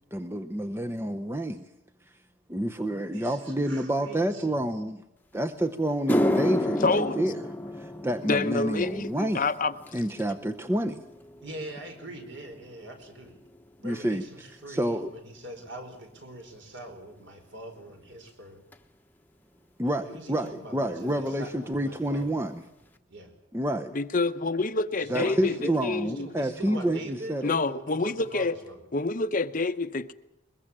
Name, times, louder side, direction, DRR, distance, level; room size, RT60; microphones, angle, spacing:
voice 1, 0.1-1.7 2.5-5.0 5.3-7.5 7.7-9.4 9.9-11.0 13.8-14.2 14.7-15.1 19.8-22.6 23.5-23.9 25.1-27.6, right 1 dB, 10° right, 0.7 m, -29 dB
voice 2, 2.9-4.5 11.4-13.4 13.8-18.6 19.9-22.4 23.1-23.3 24.9-25.8 26.0-28.8, right 1 dB, 60° right, 4.7 m, -42 dB
sound 1, 5.4-5.5 5.9-14.4 14.7-15.1 15.9-16.0 18.7-18.8 20.5-20.6 20.7-21.0 21.2-21.8 22.2-22.3 22.8-22.9, left 1 dB, 10° left, 1.1 m, -33 dB
voice 3, 6.8-7.3 8.2-9.7 23.9-25.5 25.8-26.3 26.7-26.8 27.4-28.6 28.9-30.1, left 3 dB, 40° left, 0.8 m, -27 dB
22.0 x 22.0 x 7.4 m
head